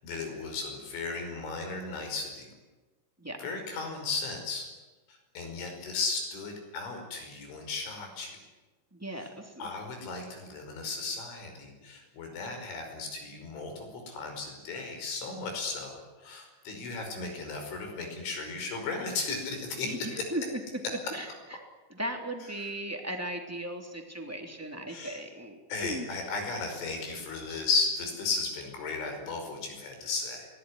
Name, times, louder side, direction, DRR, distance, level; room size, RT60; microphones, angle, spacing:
voice 1, 0.0-2.5 3.4-4.7 5.1-8.4 9.6-20.2 22.6-22.7 24.9-25.2 25.7-30.5, left 4 dB, 80° left, 4 dB, 7.6 m, -35 dB
voice 2, 8.9-9.7 19.8-21.6 21.9-26.1, right 1 dB, 5° right, 3 dB, 2.0 m, -37 dB
25.0 x 19.5 x 9.9 m, 1.2 s
omnidirectional pair, 5.4 m